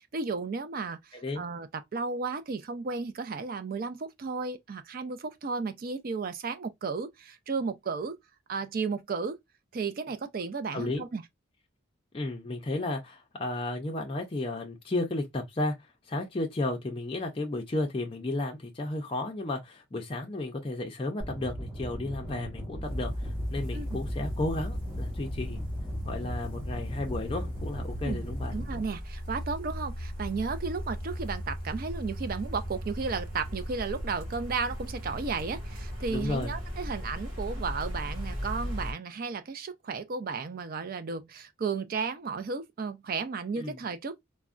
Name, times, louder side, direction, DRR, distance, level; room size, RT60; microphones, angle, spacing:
voice 1, 0.1-8.2 8.5-9.4 9.7-11.2 23.7-24.0 28.0-28.2 28.5-44.2, right 4 dB, 45° right, 0.4 m, -34 dB
voice 2, 10.7-11.0 12.1-25.6 26.0-28.5 36.1-36.5 43.6-43.8, left 2 dB, 25° left, 0.4 m, -33 dB
sound 1, 21.2-28.8, equal, 10° right, 1.1 m, -39 dB
sound 2, 22.8-38.9, equal, 25° right, 1.9 m, -37 dB
3.4 x 2.1 x 2.4 m
head